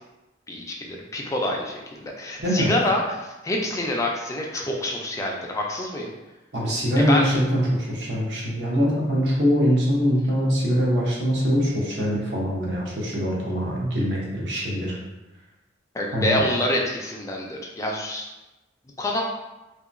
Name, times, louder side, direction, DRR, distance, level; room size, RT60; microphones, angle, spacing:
voice 1, 0.5-6.1 7.1-7.3 15.9-18.2 19.0-19.2, left 1 dB, 15° left, -1 dB, 0.3 m, -26 dB
voice 2, 2.4-2.7 6.5-15.0 16.1-16.4, equal, 65° right, -4 dB, 0.8 m, -23 dB
2.8 x 2.2 x 2.5 m, 1.0 s
head